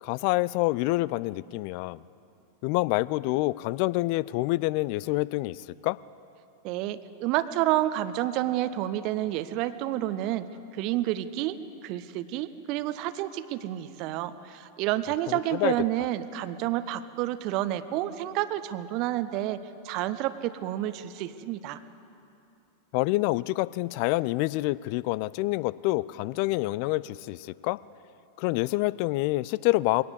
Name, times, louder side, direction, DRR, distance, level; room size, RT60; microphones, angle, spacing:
voice 1, 0.0-2.0 2.6-6.0 15.3-15.7 22.9-27.8 28.4-30.0, left 20 dB, 45° left, 21 dB, 0.4 m, -27 dB
voice 2, 6.6-10.5 10.8-11.6 11.8-21.8, right 14 dB, 40° right, 13 dB, 0.9 m, -29 dB
22.0 x 18.0 x 8.2 m, 2.7 s
figure-of-eight pair, 90°, 0 cm